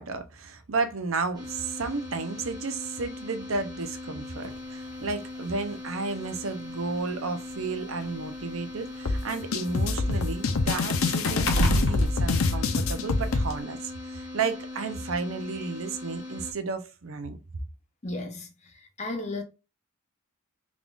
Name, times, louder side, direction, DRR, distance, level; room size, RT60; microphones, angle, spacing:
voice 1, 0.0-17.4, right 4 dB, 75° right, 0.7 m, -33 dB
sound 1, 1.3-16.5, left 2 dB, 20° right, 1.1 m, -40 dB
sound 2, 4.4-4.6 5.7-5.8 6.2-6.3 7.3-9.3 9.6-13.1 13.5-13.6, equal, 65° left, 1.0 m, -30 dB
sound 3, 9.1-13.5, left 3 dB, 80° left, 0.6 m, -26 dB
voice 2, 18.0-19.4, left 2 dB, 35° left, 0.6 m, -35 dB
3.7 x 3.6 x 2.4 m
head